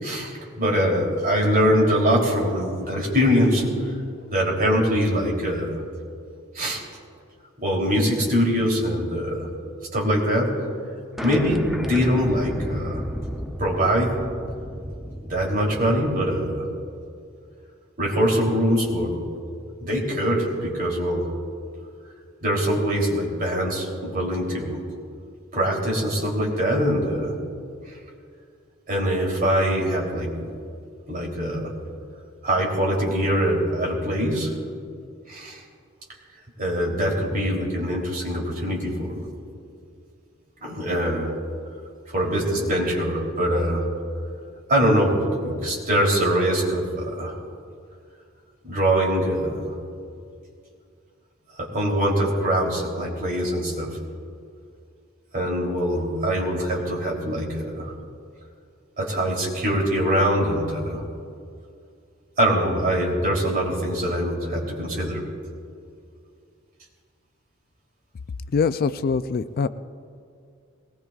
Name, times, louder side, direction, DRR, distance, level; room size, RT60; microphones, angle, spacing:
voice 1, 0.0-3.9 4.3-5.8 6.5-6.8 7.6-9.5 9.9-10.6 11.2-13.0 13.6-14.2 15.3-16.7 18.0-19.2 19.8-21.3 22.4-24.8 25.5-27.4 28.9-30.5 31.1-31.7 32.4-34.5 35.3-35.6 36.6-39.2 40.6-41.3 42.1-43.9 44.7-47.3 48.6-49.7 51.6-54.0 55.3-57.9 59.0-61.0 62.4-65.2, equal, 45° right, -2 dB, 3.3 m, -23 dB
sound 1, 11.2-16.5, equal, ahead, 0.6 m, -33 dB
voice 2, 68.5-69.7, left 5 dB, 45° left, 13 dB, 0.4 m, -23 dB
21.0 x 19.5 x 2.4 m, 2.3 s
head